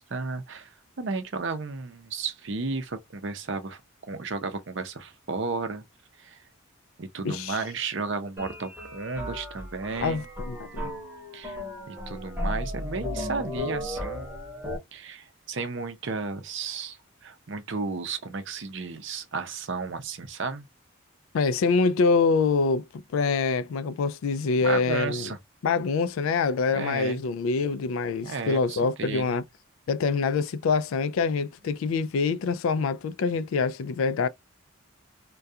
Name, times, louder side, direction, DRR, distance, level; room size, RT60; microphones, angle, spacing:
voice 1, 0.1-0.7 1.0-3.8 4.1-5.8 6.2-6.4 7.0-10.2 11.3-11.6 11.9-14.4 14.9-17.0 17.2-20.6 24.6-25.4 26.7-27.2 28.2-29.4, right 4 dB, 60° right, 0.5 m, -33 dB
voice 2, 7.2-7.6 10.0-10.9 21.3-22.8 23.1-25.3 25.6-29.4 29.9-34.3, left 4 dB, 75° left, 0.3 m, -25 dB
sound 1, 8.4-14.8, left 1 dB, 10° right, 0.9 m, -35 dB
2.3 x 2.2 x 2.6 m
head